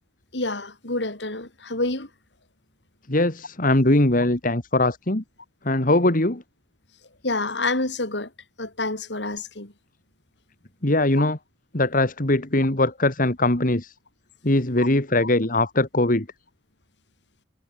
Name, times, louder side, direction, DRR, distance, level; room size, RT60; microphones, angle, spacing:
voice 1, 0.3-2.1 7.2-8.3 8.6-9.7 11.2-11.3 14.8-14.9 15.2-15.3, left 2 dB, 80° left, 4.9 m, -28 dB
voice 2, 3.1-5.2 5.6-6.4 10.8-11.4 11.7-13.9 14.4-16.3, left 2 dB, 50° left, 2.6 m, -21 dB
head